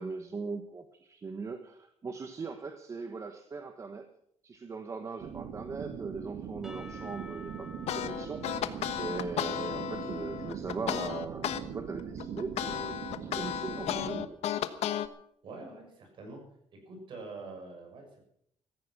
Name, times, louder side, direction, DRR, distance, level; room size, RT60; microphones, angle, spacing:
voice 1, 0.0-4.1 4.4-14.3, right 4 dB, 25° right, 8 dB, 1.1 m, -40 dB
sound 1, 5.2-14.3, right 7 dB, 80° right, 2.1 m, -41 dB
Percussion / Church bell, 6.6-10.8, left 2 dB, 5° right, 1.7 m, -52 dB
sound 2, 7.9-11.6 12.0-15.1, left 11 dB, 70° left, 1.2 m, -34 dB
voice 2, 15.4-16.4 16.8-18.3, right 3 dB, 45° right, 2 dB, 6.8 m, -45 dB
16.5 x 14.5 x 6.0 m, 0.69 s
cardioid pair, 170°, 11 cm